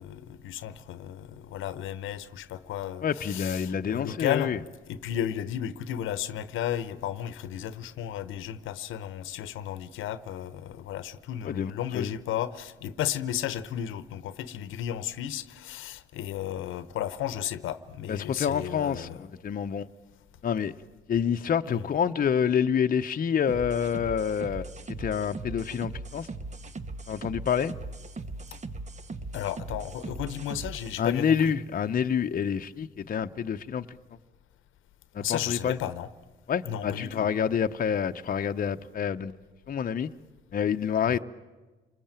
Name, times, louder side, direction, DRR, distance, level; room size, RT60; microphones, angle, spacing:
voice 1, 0.0-4.6 4.9-19.2 21.7-21.9 29.3-31.5 35.2-36.1 36.6-37.3 41.1-41.2, left 10 dB, 85° left, 1.0 m, -34 dB
voice 2, 3.0-4.6 11.4-12.1 18.1-19.9 20.4-20.7 21.1-24.7 25.0-26.3 27.1-27.7 31.0-34.0 35.1-35.8 36.5-39.3 39.7-40.1 40.5-41.2, left 7 dB, 45° left, 0.8 m, -27 dB
sound 1, 23.5-31.0, right 3 dB, 35° right, 1.2 m, -39 dB
28.5 x 20.5 x 9.0 m
cardioid pair, 90°, 20 cm